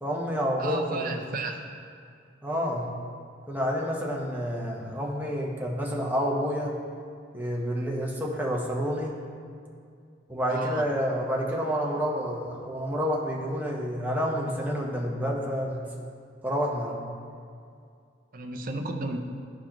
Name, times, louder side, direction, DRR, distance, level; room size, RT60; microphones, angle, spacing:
voice 1, 0.0-1.2 2.4-2.9 3.5-6.7 7.3-9.1 10.3-15.8 16.4-17.0, equal, 10° right, -2 dB, 1.0 m, -29 dB
voice 2, 0.6-1.5 10.5-10.8 18.3-19.2, right 3 dB, 50° right, 4 dB, 0.6 m, -33 dB
13.0 x 4.6 x 3.0 m, 2.3 s
head